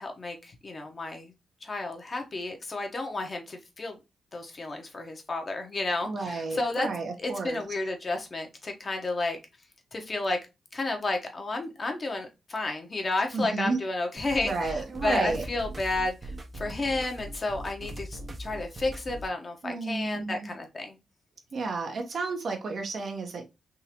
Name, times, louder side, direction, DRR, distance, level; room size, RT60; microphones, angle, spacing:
voice 1, 0.0-1.3 1.6-4.0 4.3-6.9 7.2-9.4 9.9-10.4 10.7-21.0, left 2 dB, 40° left, 1.0 m, -32 dB
voice 2, 6.1-7.6 13.3-13.8 14.4-15.5 19.6-20.5 21.5-23.4, right 3 dB, 60° right, 1.0 m, -31 dB
sound 1, 14.2-19.2, right 1 dB, 35° right, 0.8 m, -40 dB
3.7 x 2.7 x 2.9 m
cardioid pair, 70°, 0 cm